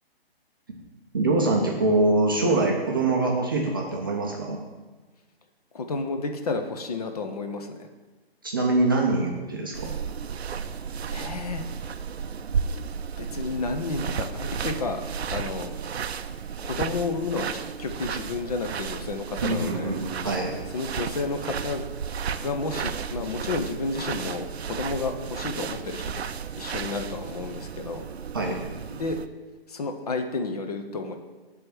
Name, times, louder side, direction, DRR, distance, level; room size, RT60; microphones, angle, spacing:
voice 1, 1.1-4.6 8.4-9.9 19.4-20.5 28.3-28.6, right 2 dB, 20° right, -1 dB, 0.5 m, -24 dB
voice 2, 5.7-7.9 11.1-11.6 13.2-15.0 15.3-15.7 16.6-19.9 20.7-21.8 22.4-26.0 26.6-28.0 28.9-29.2 29.7-31.2, left 3 dB, 40° left, 6 dB, 0.6 m, -31 dB
sound 1, 9.7-29.3, right 6 dB, 90° right, 0.5 m, -33 dB
7.5 x 3.5 x 5.9 m, 1.2 s
figure-of-eight pair, 150°, 31 cm